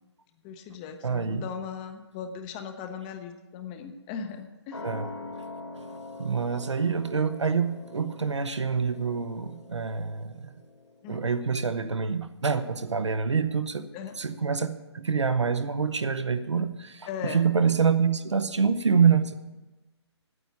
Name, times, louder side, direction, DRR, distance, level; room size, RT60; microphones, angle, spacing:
voice 1, 0.4-4.8 11.0-11.2 13.9-14.1 17.1-17.5, left 6 dB, 15° left, 7 dB, 0.7 m, -38 dB
voice 2, 1.0-1.5 4.8-5.1 6.2-10.5 11.1-13.9 14.2-19.3, right 6 dB, 80° right, 10 dB, 1.0 m, -26 dB
sound 1, 4.7-11.8 12.1-12.2, left 2 dB, 85° left, 3.2 m, -44 dB
9.4 x 8.2 x 8.2 m, 1.1 s
figure-of-eight pair, 150°, 15 cm